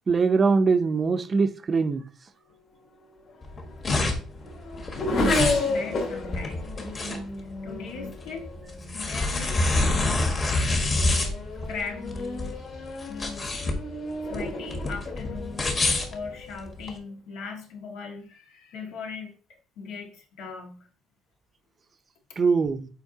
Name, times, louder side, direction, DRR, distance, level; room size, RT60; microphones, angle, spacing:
voice 1, 0.1-2.0 22.4-22.9, right 4 dB, 30° right, 0.5 m, -22 dB
Race car auto racing / Accelerating revving vroom, 3.3-9.2 10.0-10.3 10.8-16.7, left 2 dB, 55° left, 2.5 m, -32 dB
sound 1, 3.4-16.9, left 2 dB, 30° left, 1.2 m, -27 dB
voice 2, 5.1-6.7 7.4-8.5 8.9-10.2 11.7-12.6 13.1-13.5 14.3-15.8 16.1-19.3 19.8-20.8, left 5 dB, 90° left, 1.7 m, -38 dB
8.0 x 4.6 x 2.7 m
cardioid pair, 140°, 0 cm